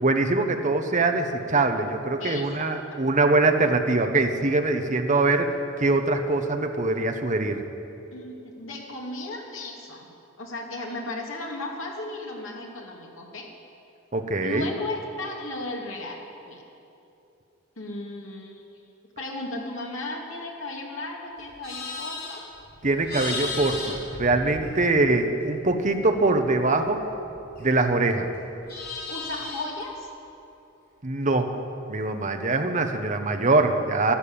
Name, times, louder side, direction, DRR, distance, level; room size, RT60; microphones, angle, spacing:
voice 1, 0.0-7.6 14.1-14.7 22.8-27.0 27.6-28.3 31.0-31.5 31.9-34.1, right 2 dB, 35° right, 6 dB, 1.0 m, -23 dB
voice 2, 2.2-3.0 8.1-10.0 10.4-13.5 14.4-16.6 17.8-18.6 19.2-22.4 24.5-24.9 29.1-30.1 32.6-32.9, left 2 dB, 70° left, -1 dB, 2.6 m, -35 dB
Livestock farm animals working animals, 21.4-25.1 25.4-27.9 28.2-29.8, left 3 dB, 50° left, 4.2 m, -36 dB
12.0 x 11.5 x 8.8 m, 2.8 s
head